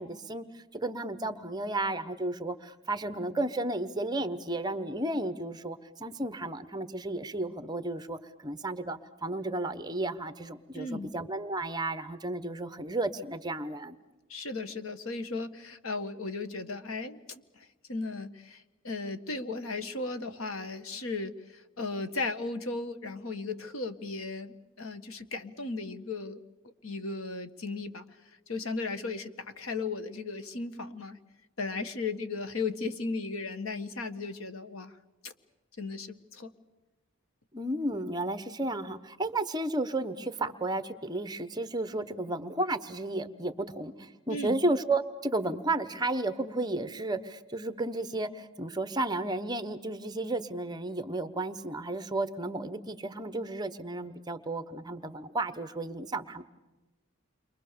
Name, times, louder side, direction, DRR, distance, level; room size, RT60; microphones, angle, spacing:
voice 1, 0.0-14.0 37.5-56.4, right 2 dB, 20° right, 11 dB, 1.0 m, -33 dB
voice 2, 10.7-11.1 14.3-26.4 26.8-28.0 28.5-31.2 31.6-34.9 35.2-35.3 35.8-36.5 44.3-44.6, left 3 dB, 85° left, 9 dB, 1.6 m, -36 dB
29.5 x 24.0 x 6.9 m, 1.1 s
head